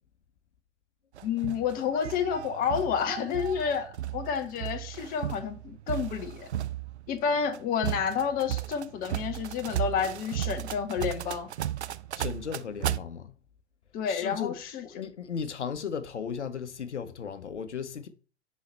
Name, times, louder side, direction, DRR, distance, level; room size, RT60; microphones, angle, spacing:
sound 1, 1.1-13.0, right 12 dB, 70° right, 0.5 m, -35 dB
voice 1, 1.2-6.5 7.1-11.5 13.9-14.9, left 7 dB, 25° left, 0.8 m, -30 dB
voice 2, 12.1-13.4 14.1-14.5 14.8-18.1, left 6 dB, 75° left, 0.8 m, -36 dB
5.6 x 4.1 x 4.3 m
figure-of-eight pair, 100°, 35 cm